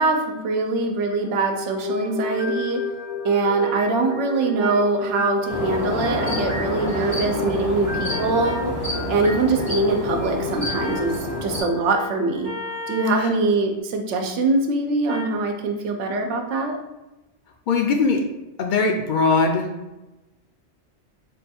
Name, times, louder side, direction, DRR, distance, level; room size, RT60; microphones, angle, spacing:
voice 1, 0.0-2.8 3.2-8.7 9.1-12.5 12.9-16.8, right 3 dB, 80° right, 4 dB, 0.9 m, -23 dB
sound 1, 1.1-13.3, left 3 dB, 25° right, 0.4 m, -32 dB
sound 2, 2.2-2.4 3.6-3.8 4.6-4.8 6.2-6.5 8.1-8.7 10.8-11.1 12.4-13.3 15.1-15.4, left 2 dB, 55° right, 0.8 m, -35 dB
sound 3, 5.5-11.6, left 1 dB, 90° left, 2.0 m, -28 dB
voice 2, 17.7-18.2 18.6-19.7, left 4 dB, 60° left, 3 dB, 0.5 m, -20 dB
3.6 x 2.3 x 4.1 m, 1.0 s
omnidirectional pair, 1.2 m